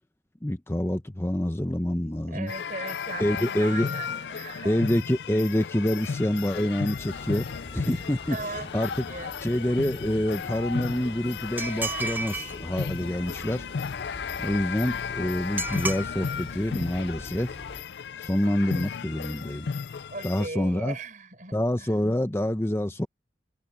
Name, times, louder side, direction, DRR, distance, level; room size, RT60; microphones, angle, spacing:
voice 1, 0.4-2.5 3.2-3.9 4.6-7.5 7.7-8.4 8.7-8.9 9.4-13.7 14.4-17.6 18.2-19.7 20.2-21.0 21.5-23.1, left 1 dB, 15° left, 0.7 m, -27 dB
voice 2, 2.3-4.9 8.3-9.3 20.1-21.9, right 3 dB, 45° right, 5.3 m, -38 dB
sound 1, 2.5-20.5, left 6 dB, 75° left, 0.4 m, -35 dB
sound 2, 6.9-17.8, left 1 dB, 35° left, 6.3 m, -45 dB
sound 3, 11.6-12.6 15.6-16.0, right 3 dB, 10° right, 0.9 m, -31 dB
head